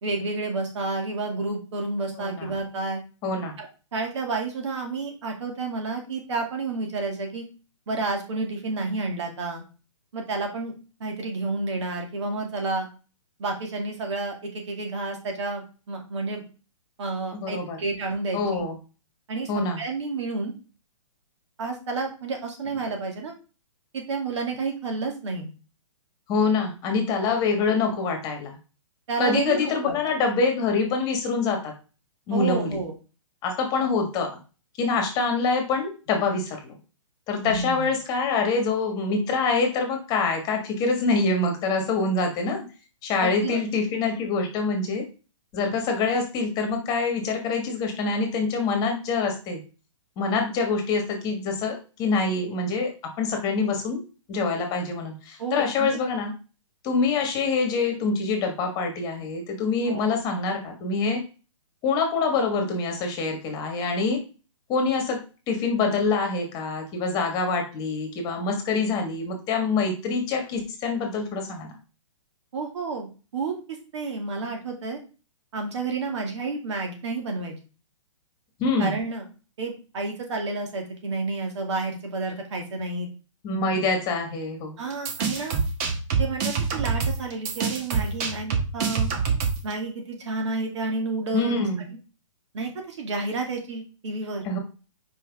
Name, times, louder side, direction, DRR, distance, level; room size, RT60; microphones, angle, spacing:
voice 1, 0.0-3.0 3.6-3.7 3.9-7.4 7.9-9.6 10.1-10.7 11.0-12.9 13.4-16.4 17.0-18.6 19.3-20.5 21.6-23.3 23.9-25.5 29.1-30.1 32.3-32.9 37.4-37.9 43.2-43.6 55.4-56.0 59.9-60.2 72.5-73.5 73.9-75.0 75.5-77.5 78.8-79.2 79.6-83.1 84.8-85.6 86.2-89.1 89.6-91.6 92.5-94.4, right 3 dB, 60° right, 3 dB, 2.3 m, -30 dB
voice 2, 2.2-2.5 3.2-3.5 17.3-17.8 18.3-18.8 19.5-19.8 26.3-28.5 29.2-31.7 32.3-32.7 33.4-34.3 34.8-36.7 37.3-42.6 43.0-45.0 45.5-49.6 50.2-54.0 54.3-56.3 56.8-61.2 61.8-64.2 64.7-65.2 65.5-71.7 78.6-78.9 83.4-84.8 91.3-91.9 94.4-94.6, left 4 dB, 25° left, 4 dB, 1.5 m, -25 dB
sound 1, 84.9-89.7, right 5 dB, 30° right, 1.1 m, -26 dB
5.8 x 4.9 x 3.5 m, 0.34 s
hypercardioid pair, 150°, 17 cm